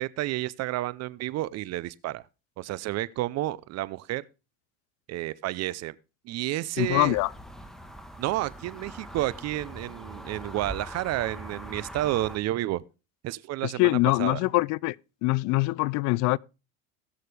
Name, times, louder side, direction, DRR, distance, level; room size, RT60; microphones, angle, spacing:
voice 1, 0.0-2.2 2.6-4.2 5.1-5.9 6.2-7.2 8.2-12.8 13.2-14.4, right 15 dB, 50° right, 0.7 m, -30 dB
voice 2, 6.8-7.3 13.6-15.0 15.2-16.4, left 21 dB, 60° left, 0.4 m, -24 dB
sound 1, 6.8-12.4, equal, ahead, 1.4 m, -42 dB
19.0 x 6.6 x 3.4 m
supercardioid pair, 115°, 33 cm